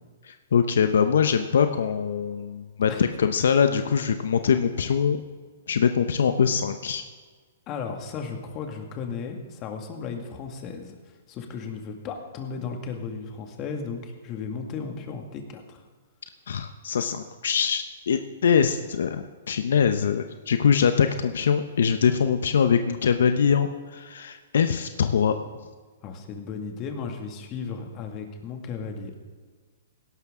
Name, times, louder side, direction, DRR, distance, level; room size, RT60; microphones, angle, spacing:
voice 1, 0.2-5.2 5.7-7.0 16.5-25.4, left 7 dB, 75° left, 8 dB, 0.7 m, -23 dB
voice 2, 7.7-15.8 26.0-29.2, left 5 dB, 30° left, 3 dB, 2.0 m, -35 dB
17.0 x 12.0 x 3.7 m, 1.5 s
hypercardioid pair, 140°, 0 cm